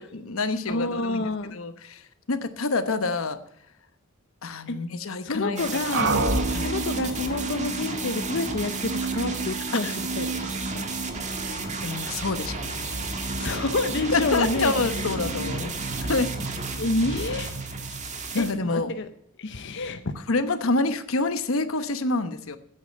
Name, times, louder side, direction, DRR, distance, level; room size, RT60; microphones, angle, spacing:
voice 1, 0.0-1.2 1.5-3.4 4.4-5.7 6.5-6.7 9.8-10.0 11.8-13.1 14.1-15.7 16.0-16.3 18.3-18.9 20.3-22.6, left 3 dB, 85° left, 11 dB, 1.1 m, -27 dB
voice 2, 0.7-1.6 4.7-4.8 5.2-6.2 6.6-10.3 10.5-10.9 13.4-15.6 16.8-17.5 18.3-19.1 19.4-20.2, left 2 dB, 60° left, 8 dB, 0.8 m, -29 dB
sound 1, 5.6-18.5, right 4 dB, 35° right, 1.9 m, -34 dB
sound 2, 5.9-18.8, right 2 dB, 60° right, 1.5 m, -32 dB
9.9 x 8.6 x 8.5 m, 0.71 s
head